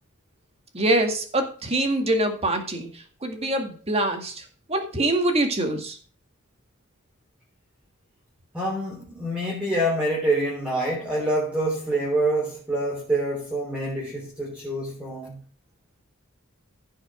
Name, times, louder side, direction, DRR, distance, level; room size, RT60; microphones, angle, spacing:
voice 1, 0.7-6.0, right 1 dB, 30° right, 2.0 m, -25 dB
voice 2, 8.5-15.4, right 1 dB, 5° right, 3.7 m, -26 dB
15.5 x 5.7 x 5.0 m
head